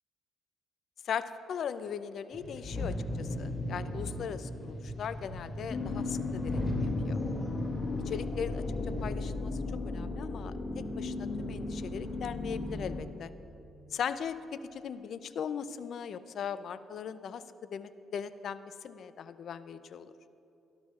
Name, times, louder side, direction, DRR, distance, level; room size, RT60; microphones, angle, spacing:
voice 1, 1.0-7.2 8.1-9.6 9.8-10.5 11.0-13.3 13.9-17.4 17.7-20.1, left 7 dB, 65° left, 13 dB, 0.4 m, -39 dB
sound 1, 2.3-9.0, left 1 dB, 20° left, 2.5 m, -37 dB
sound 2, 5.7-13.0, left 3 dB, 40° left, 1.4 m, -36 dB
17.0 x 12.0 x 2.4 m, 3.0 s
cardioid pair, 90°, 0 cm